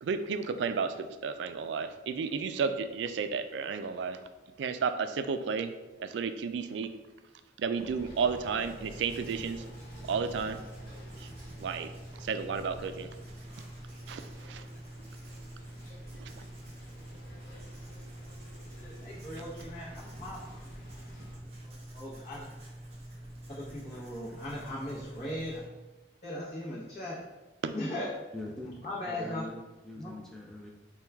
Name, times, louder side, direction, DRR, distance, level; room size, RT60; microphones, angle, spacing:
voice 1, 0.0-4.2 4.6-5.7 6.0-6.9 7.6-9.6 10.1-10.6 11.2-11.3 11.6-11.9 12.2-13.1 14.1-14.6 16.2-16.4 27.6-27.7, right 5 dB, 80° right, 10 dB, 0.3 m, -32 dB
sound 1, 7.7-21.3, right 1 dB, 55° left, 1.1 m, -51 dB
Writing, 8.6-25.6, right 1 dB, 35° right, 0.9 m, -46 dB
voice 2, 18.8-20.4 21.6-22.5 23.5-25.6 26.2-27.2 27.7-28.1 28.6-29.4 30.0-30.1, left 1 dB, 35° left, -8 dB, 0.7 m, -38 dB
voice 3, 28.3-29.6 29.8-30.7, left 1 dB, 5° left, -1 dB, 0.3 m, -43 dB
4.4 x 2.3 x 3.4 m, 1.1 s
head